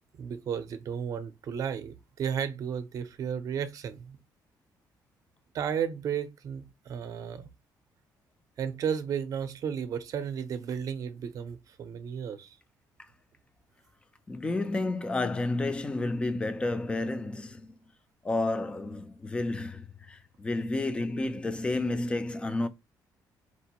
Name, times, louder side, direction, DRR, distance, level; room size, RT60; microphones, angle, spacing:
voice 1, 0.2-4.2 5.5-7.4 8.6-12.5, right 7 dB, 50° right, 0.6 m, -33 dB
voice 2, 14.3-17.8 18.2-22.7, left 2 dB, 15° left, 0.4 m, -31 dB
4.3 x 2.5 x 2.9 m
cardioid pair, 165°, 8 cm